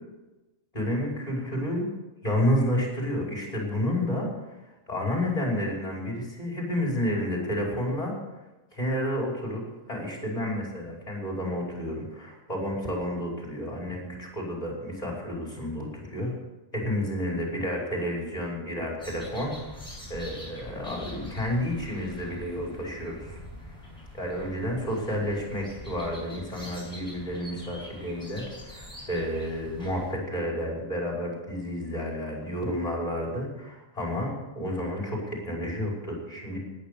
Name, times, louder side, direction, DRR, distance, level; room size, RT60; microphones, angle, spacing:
voice 1, 0.7-1.9 2.2-4.6 4.9-8.1 8.7-9.6 9.9-16.3 16.7-23.4 24.1-36.6, equal, 30° left, -2 dB, 5.5 m, -30 dB
sound 1, 19.0-30.1, left 1 dB, 5° left, 7.3 m, -44 dB
18.0 x 10.5 x 6.9 m, 1.1 s
omnidirectional pair, 1.4 m